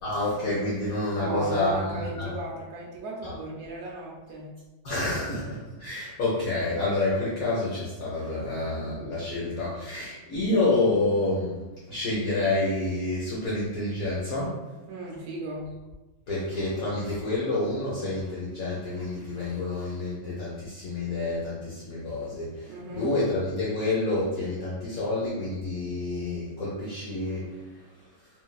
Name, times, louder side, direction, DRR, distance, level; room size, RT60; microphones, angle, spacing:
voice 1, 0.0-2.3 3.2-3.3 4.8-11.6 11.9-14.5 16.3-27.5, left 2 dB, 65° left, -7 dB, 0.9 m, -28 dB
voice 2, 1.1-4.5 14.9-15.7 22.7-23.1, right 2 dB, 80° right, -3 dB, 0.8 m, -36 dB
3.0 x 2.6 x 2.3 m, 1.1 s
omnidirectional pair, 2.2 m